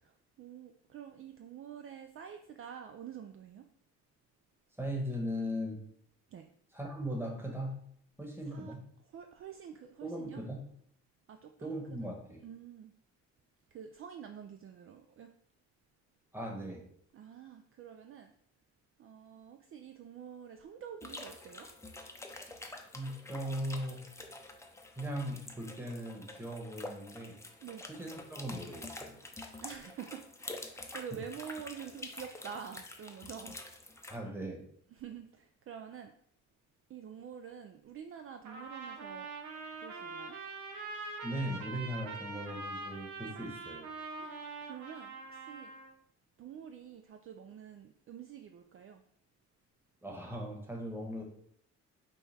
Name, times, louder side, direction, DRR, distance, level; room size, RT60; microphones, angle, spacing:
voice 1, 0.0-3.7 6.3-6.5 8.4-8.8 9.1-10.4 11.3-12.1 12.4-12.9 13.7-15.3 17.1-18.3 19.0-21.7 27.6-27.8 29.6-33.9 34.9-36.1 36.9-39.3 39.8-40.4 44.2-44.3 44.6-45.7 46.4-49.0, right 8 dB, 45° right, 6 dB, 0.4 m, -47 dB
voice 2, 4.8-5.8 6.7-7.8 8.2-8.8 10.0-10.6 11.6-12.4 16.3-16.8 22.9-24.0 24.9-27.4 27.9-29.2 30.9-31.2 34.1-34.6 41.2-43.9 50.0-51.2, equal, 10° right, 0 dB, 1.2 m, -39 dB
sound 1, 21.0-34.2, left 2 dB, 10° left, 0.6 m, -47 dB
Trumpet, 38.4-45.9, right 3 dB, 80° right, 1.0 m, -43 dB
5.4 x 2.3 x 4.1 m, 0.66 s
cardioid pair, 90°, 30 cm